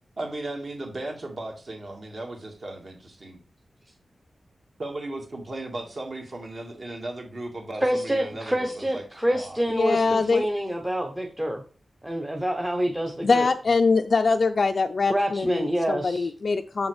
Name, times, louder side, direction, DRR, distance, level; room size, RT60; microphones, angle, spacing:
voice 1, 0.2-3.4 4.8-9.0 9.3-9.6 9.9-10.3, right 2 dB, 45° right, 2 dB, 1.7 m, -36 dB
voice 2, 7.8-11.6 12.0-13.5 15.1-16.3, right 1 dB, 10° right, 3 dB, 0.7 m, -27 dB
voice 3, 9.7-10.5 13.2-16.9, left 4 dB, 50° left, 6 dB, 0.4 m, -23 dB
7.0 x 7.0 x 3.2 m, 0.38 s
wide cardioid pair, 140°, 0 cm